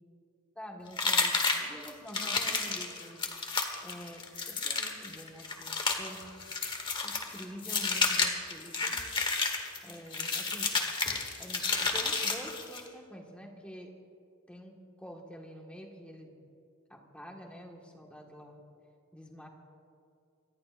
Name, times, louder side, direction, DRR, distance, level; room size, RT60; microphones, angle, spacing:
voice 1, 0.6-6.2 7.0-9.0 9.8-10.8 11.4-13.9 14.5-16.3 16.9-18.6 19.1-19.5, equal, 5° left, 0 dB, 1.7 m, -47 dB
sound 1, 1.0-12.9, left 4 dB, 20° left, 1.4 m, -31 dB
25.5 x 19.0 x 2.6 m, 2.5 s
head